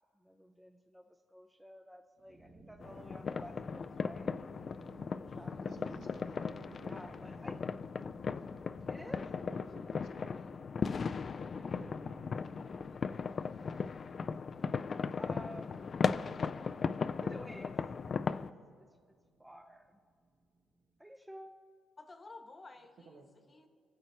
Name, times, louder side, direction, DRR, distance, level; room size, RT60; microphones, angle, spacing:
voice 1, 0.2-4.4 5.3-5.8 6.8-7.6 8.9-9.3 9.8-10.4 11.5-12.8 13.6-14.3 15.2-15.9 17.1-18.5 18.8-18.9 19.4-20.0 21.0-21.6, equal, 5° right, 6 dB, 0.7 m, -53 dB
sound 1, 2.2-21.0, right 2 dB, 50° right, 1.8 m, -60 dB
sound 2, 2.8-18.5, left 5 dB, 45° left, 0.4 m, -37 dB
voice 2, 5.6-7.1 9.4-10.4 23.1-23.3, right 4 dB, 65° right, 2 dB, 1.7 m, -54 dB
Drum, 11.8-13.9, right 2 dB, 35° right, 3.6 m, -55 dB
voice 3, 22.0-23.7, left 3 dB, 30° left, 7 dB, 1.2 m, -53 dB
23.0 x 7.9 x 4.5 m, 2.1 s
cardioid pair, 90°, 0 cm